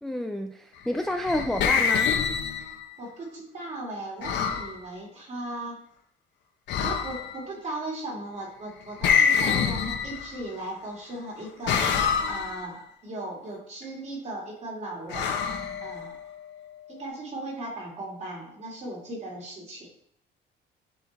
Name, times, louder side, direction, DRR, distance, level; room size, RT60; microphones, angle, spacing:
voice 1, 0.0-2.1, left 1 dB, ahead, 5 dB, 0.3 m, -29 dB
sound 1, 1.0-3.0 4.2-4.7 6.7-7.4 9.0-10.5 11.7-12.7 15.1-16.3, left 6 dB, 70° left, 1.1 m, -26 dB
voice 2, 3.0-5.8 6.8-11.9 12.3-15.3 15.8-16.2 16.9-19.9, right 1 dB, 35° right, -2 dB, 2.6 m, -37 dB
10.5 x 3.9 x 4.0 m, 0.70 s
cardioid pair, 150°, 19 cm